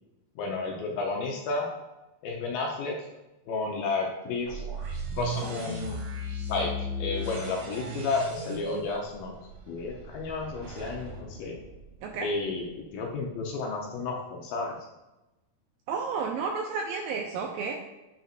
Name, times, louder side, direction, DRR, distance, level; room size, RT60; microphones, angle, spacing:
voice 1, 0.4-1.7 2.2-3.1 3.5-4.6 5.1-6.0 6.5-9.4 9.7-11.6 12.2-14.8, left 3 dB, 75° left, 0 dB, 2.3 m, -32 dB
sound 1, 4.5-12.4, equal, 65° right, 2.7 m, -37 dB
voice 2, 15.9-17.7, right 5 dB, 85° right, 2 dB, 2.1 m, -31 dB
8.8 x 5.5 x 2.5 m, 1.0 s
omnidirectional pair, 4.7 m